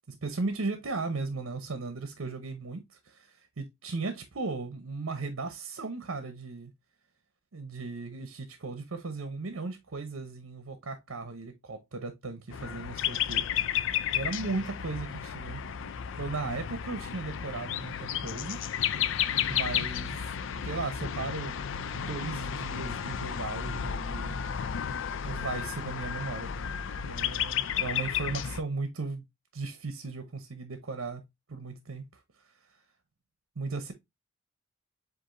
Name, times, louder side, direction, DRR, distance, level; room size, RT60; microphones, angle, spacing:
voice 1, 0.1-6.7 7.5-13.4 14.1-15.6 16.2-18.6 19.5-20.2 20.6-21.6 21.9-24.4 25.2-29.2 29.5-31.2 31.5-32.1 33.6-33.9, right 3 dB, 75° right, 0.8 m, -36 dB
sound 1, 12.5-28.6, left 9 dB, 65° left, 0.4 m, -32 dB
7.8 x 2.6 x 2.5 m
head